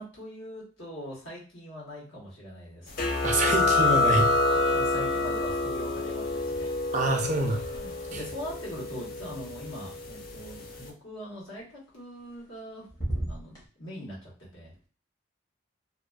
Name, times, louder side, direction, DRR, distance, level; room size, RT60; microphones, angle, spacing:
voice 1, 0.0-3.0 4.5-6.8 7.4-12.9 13.3-14.8, equal, 70° left, -5 dB, 1.2 m, -42 dB
sound 1, 3.0-10.2, left 2 dB, 45° left, 0.4 m, -27 dB
voice 2, 3.2-4.3 6.9-7.7, right 2 dB, 35° right, 3 dB, 0.4 m, -26 dB
sound 2, 6.9-10.4 12.0-12.6 12.9-13.7, right 1 dB, 20° left, 0.7 m, -40 dB
2.4 x 2.4 x 2.2 m, 0.39 s
head